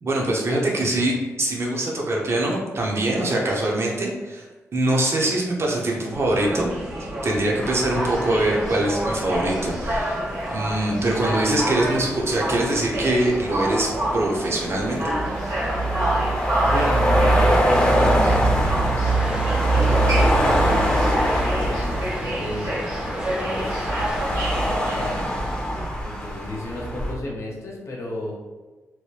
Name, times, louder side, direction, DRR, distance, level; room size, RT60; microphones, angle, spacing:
voice 1, 0.0-4.5 4.7-6.7 7.2-10.2 10.5-15.2, right 1 dB, 50° right, -1 dB, 0.8 m, -23 dB
sound 1, 6.1-25.9, right 1 dB, 80° right, 0.9 m, -29 dB
sound 2, 7.6-27.1, right 1 dB, 15° left, 0.7 m, -24 dB
voice 2, 16.6-24.0 24.5-25.4 26.0-28.3, left 1 dB, 65° left, -2 dB, 0.8 m, -34 dB
sound 3, 18.5-25.9, right 1 dB, 15° right, 0.3 m, -40 dB
3.1 x 2.2 x 3.2 m, 1.3 s
cardioid pair, 60°, 5 cm